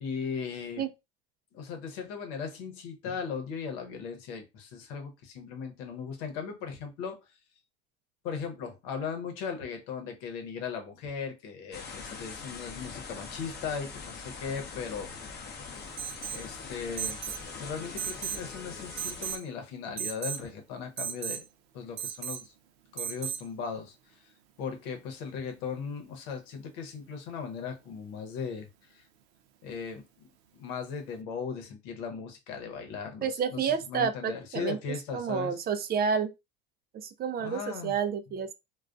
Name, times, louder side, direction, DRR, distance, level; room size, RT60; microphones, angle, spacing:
voice 1, 0.0-0.8 1.5-7.2 8.2-15.1 16.3-17.2 17.6-21.4 21.7-22.5 22.9-24.3 24.6-29.0 29.6-30.3 30.5-35.5 37.4-37.9, left 6 dB, 75° left, 0.9 m, -38 dB
sound 1, 11.7-19.4, left 5 dB, 35° left, 0.7 m, -42 dB
Alarm, 16.0-16.5 17.0-17.4 18.0-18.5 19.0-19.4 20.0-20.4 21.0-21.4 22.0-22.4 23.0-23.4, right 9 dB, 80° right, 0.6 m, -35 dB
voice 2, 33.2-34.8 35.1-36.3 36.9-38.5, right 6 dB, 30° right, 0.4 m, -30 dB
2.3 x 2.2 x 2.5 m
hypercardioid pair, 85°, 31 cm